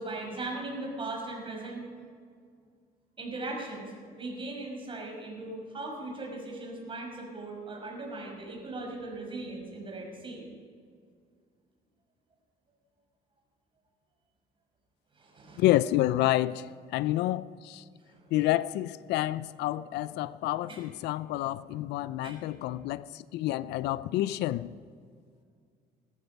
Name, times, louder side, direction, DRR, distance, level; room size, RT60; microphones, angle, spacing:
voice 1, 0.0-1.8 3.2-10.5 15.1-15.6 18.0-18.2 20.7-20.8 22.2-22.4, right 2 dB, 30° right, 5.8 m, -39 dB
voice 2, 15.6-17.8 18.3-24.7, left 15 dB, 80° left, 0.5 m, -29 dB
19.0 x 14.0 x 5.4 m
cardioid pair, 110°, 17 cm